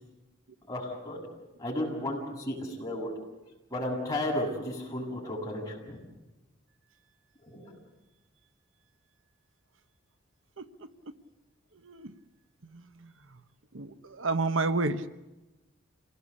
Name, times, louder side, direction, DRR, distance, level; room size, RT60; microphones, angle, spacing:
voice 1, 0.7-1.2 1.6-3.1 3.7-6.0 7.4-7.7, left 1 dB, 15° left, -3 dB, 7.9 m, -33 dB
voice 2, 12.7-13.1 13.7-15.0, right 3 dB, 75° right, 11 dB, 1.0 m, -30 dB
27.5 x 18.5 x 8.5 m, 1.0 s
head